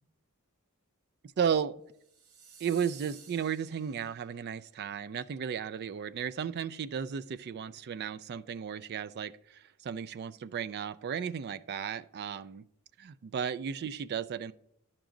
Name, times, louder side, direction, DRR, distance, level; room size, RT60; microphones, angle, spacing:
voice 1, 1.4-1.8 2.6-12.7 13.0-14.5, right 7 dB, 45° right, 15 dB, 0.3 m, -34 dB
sound 1, 2.0-4.5, right 6 dB, 70° right, 1.1 m, -54 dB
10.5 x 6.0 x 3.8 m, 0.75 s
head